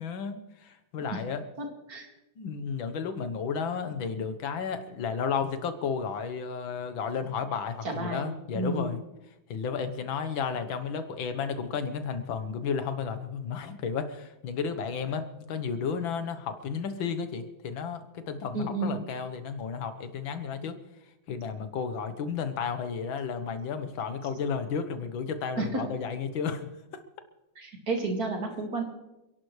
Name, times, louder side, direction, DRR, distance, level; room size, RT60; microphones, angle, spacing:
voice 1, 0.0-1.4 2.4-9.0 9.5-20.8 21.3-26.7, left 6 dB, 75° left, 9 dB, 1.9 m, -33 dB
voice 2, 1.6-2.1 7.8-8.9 18.5-19.0 25.6-25.8 27.6-28.8, right 2 dB, 45° right, 2 dB, 2.7 m, -31 dB
28.0 x 11.5 x 3.2 m, 0.93 s
omnidirectional pair, 2.2 m